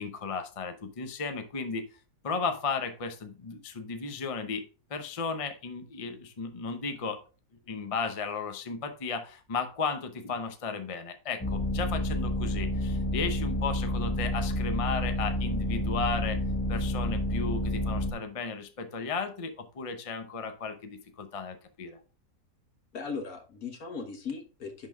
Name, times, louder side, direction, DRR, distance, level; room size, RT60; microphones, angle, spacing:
voice 1, 0.0-1.8 2.2-4.6 4.9-7.2 7.7-16.4 16.7-22.0, left 4 dB, 35° left, 7 dB, 0.5 m, -34 dB
sound 1, 11.4-18.1, left 1 dB, 10° left, 0.9 m, -29 dB
voice 2, 22.9-24.9, left 5 dB, 65° left, 4 dB, 1.8 m, -38 dB
10.5 x 3.8 x 3.5 m, 0.34 s
omnidirectional pair, 1.7 m